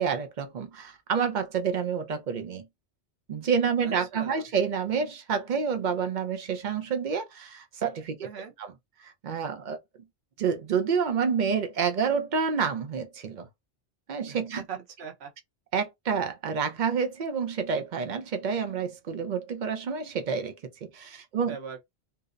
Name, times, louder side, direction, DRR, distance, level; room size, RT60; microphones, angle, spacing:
voice 1, 0.0-2.7 3.3-8.3 8.6-8.7 9.0-9.8 10.4-13.5 14.1-14.6 15.7-20.5 20.8-21.6, right 6 dB, 55° right, 0.6 m, -28 dB
voice 2, 3.8-4.5 8.2-8.5 14.3-15.3 21.5-21.8, right 6 dB, 70° right, 1.0 m, -41 dB
2.7 x 2.0 x 2.4 m
omnidirectional pair, 1.2 m